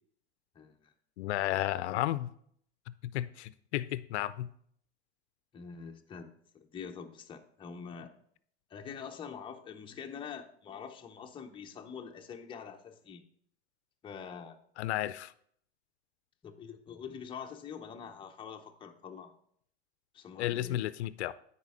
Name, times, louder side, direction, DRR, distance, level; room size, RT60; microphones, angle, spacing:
voice 1, 0.6-0.9 5.5-8.1 8.7-13.2 14.0-14.6 16.4-19.3 20.1-20.9, left 6 dB, 15° left, 0.6 m, -45 dB
voice 2, 1.2-2.3 2.9-4.5 14.8-15.3 20.4-21.3, left 14 dB, 80° left, 0.5 m, -33 dB
9.6 x 4.3 x 4.1 m
hypercardioid pair, 110°, 33 cm